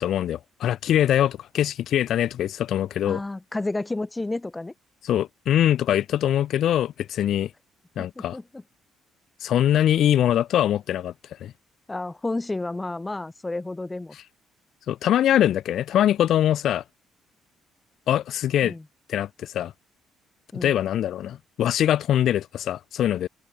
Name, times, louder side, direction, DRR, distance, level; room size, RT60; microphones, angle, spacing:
voice 1, 0.0-3.2 5.0-7.5 8.0-8.4 9.4-11.1 11.4-11.5 14.9-16.8 18.1-18.7 19.1-19.7 20.6-23.3, left 11 dB, 60° left, 0.8 m, -23 dB
voice 2, 3.1-4.7 8.0-8.6 11.9-14.2 18.6-18.8 20.5-20.8, left 2 dB, 20° left, 5.4 m, -31 dB
open air
hypercardioid pair, 45°, 0 cm